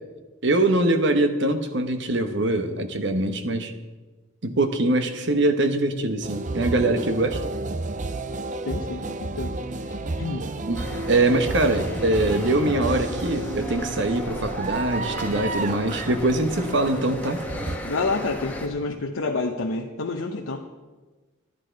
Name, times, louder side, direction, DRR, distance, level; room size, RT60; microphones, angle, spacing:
voice 1, 0.4-3.7 4.4-7.4 10.7-17.4, right 2 dB, 60° right, 8 dB, 1.1 m, -23 dB
sound 1, 6.2-17.8, right 2 dB, 40° right, 0.5 m, -32 dB
voice 2, 8.6-9.6 9.8-10.5 17.8-20.6, left 3 dB, 80° left, 2 dB, 0.8 m, -29 dB
sound 2, 10.7-18.7, equal, 10° left, 1.2 m, -35 dB
12.5 x 10.5 x 5.2 m, 1.3 s
head